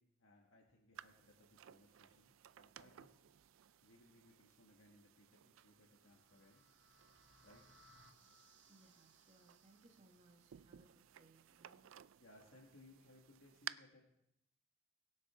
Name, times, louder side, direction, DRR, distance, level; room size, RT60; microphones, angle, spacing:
voice 1, 0.0-3.1 3.8-6.6 7.4-7.6 12.2-14.1, left 1 dB, 75° left, -2 dB, 1.8 m, -66 dB
sound 1, 1.0-13.7, right 11 dB, 80° right, 0.4 m, -58 dB
sound 2, 5.6-10.6, right 1 dB, 65° right, 1.4 m, -69 dB
voice 2, 8.7-11.9, right 2 dB, 35° right, 0 dB, 1.6 m, -68 dB
23.0 x 7.8 x 3.7 m, 0.81 s
head